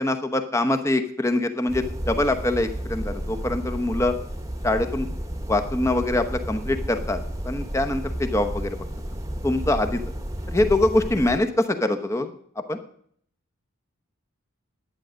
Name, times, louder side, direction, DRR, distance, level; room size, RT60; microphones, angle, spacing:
voice 1, 0.0-4.1 4.6-5.1 5.5-7.2 7.4-8.8 9.4-10.0 10.5-12.8, left 2 dB, 15° left, 6 dB, 0.9 m, -24 dB
sound 1, 1.7-11.4, equal, 15° right, 1.1 m, -32 dB
11.0 x 9.2 x 6.3 m, 0.63 s
head